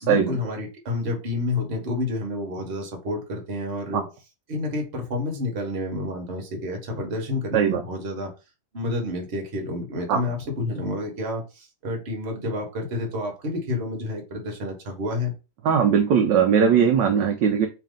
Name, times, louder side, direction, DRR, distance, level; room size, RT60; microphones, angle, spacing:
voice 1, 0.0-4.0 4.5-8.3 8.7-15.3, left 2 dB, 40° right, 2 dB, 1.2 m, -29 dB
voice 2, 15.6-17.7, right 7 dB, 75° right, 4 dB, 1.1 m, -19 dB
3.3 x 3.2 x 3.7 m, 0.29 s
omnidirectional pair, 2.2 m